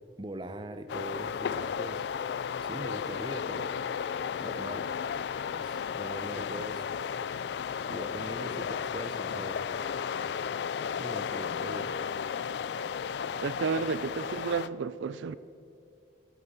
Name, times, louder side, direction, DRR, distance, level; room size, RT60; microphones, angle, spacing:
voice 1, 0.2-2.0 2.6-3.7 4.4-4.9 5.5-6.9 7.9-9.6 11.0-11.9, right 1 dB, 25° right, 9 dB, 0.7 m, -41 dB
sound 1, 0.9-14.7, left 7 dB, 70° left, 0.3 m, -34 dB
voice 2, 13.4-15.3, right 5 dB, 85° right, 16 dB, 0.4 m, -31 dB
12.0 x 9.5 x 7.3 m, 2.5 s
head